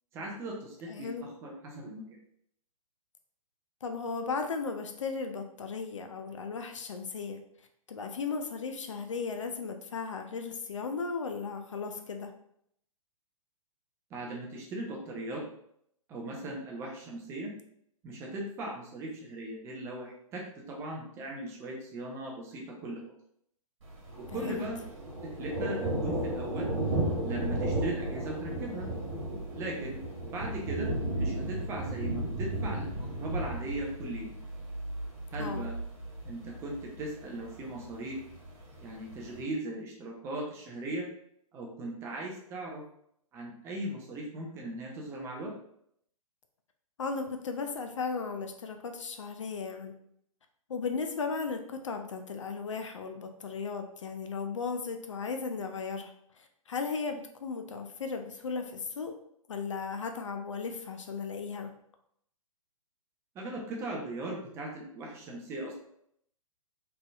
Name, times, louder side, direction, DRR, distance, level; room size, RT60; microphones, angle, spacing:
voice 1, 0.1-2.0 14.1-15.4 16.1-17.5 18.0-23.0 24.2-24.8 25.4-26.7 27.2-28.9 29.5-34.3 35.3-35.7 36.2-38.2 38.8-41.1 41.5-42.8 43.3-45.5 63.3-65.7, right 1 dB, 15° right, -1 dB, 0.5 m, -38 dB
voice 2, 0.9-1.2 3.8-7.4 7.9-12.3 24.3-24.7 35.4-35.7 47.0-49.9 50.7-59.1 59.5-61.7, left 5 dB, 55° left, 6 dB, 0.5 m, -36 dB
Thunder, 23.8-39.4, right 1 dB, 50° right, 1.4 m, -35 dB
3.7 x 3.3 x 2.3 m, 0.70 s
figure-of-eight pair, 120°, 18 cm